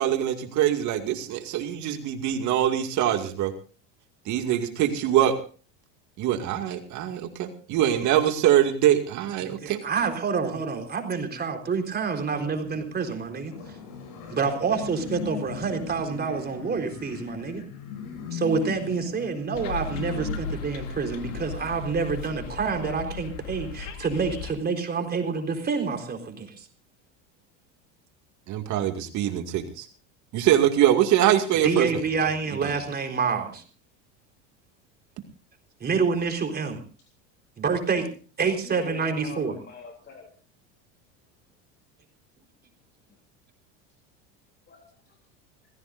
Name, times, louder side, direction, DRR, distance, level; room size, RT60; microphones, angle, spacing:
voice 1, 0.0-3.5 4.3-5.3 6.2-9.8 28.5-29.9 30.3-31.9 32.6-32.7, right 11 dB, 50° right, 6 dB, 2.3 m, -23 dB
voice 2, 9.4-13.8 14.3-17.6 18.3-26.7 31.6-33.6 35.8-36.8 37.6-38.1 38.4-39.6, right 5 dB, 25° right, 4 dB, 4.2 m, -28 dB
sound 1, 11.8-21.4, left 6 dB, 70° left, 7.1 m, -39 dB
sound 2, 19.5-24.5, left 4 dB, 90° left, 2.6 m, -36 dB
voice 3, 38.4-40.3 44.7-45.1, left 5 dB, 30° left, 3 dB, 3.3 m, -44 dB
26.5 x 16.0 x 2.6 m, 0.39 s
supercardioid pair, 120°, 36 cm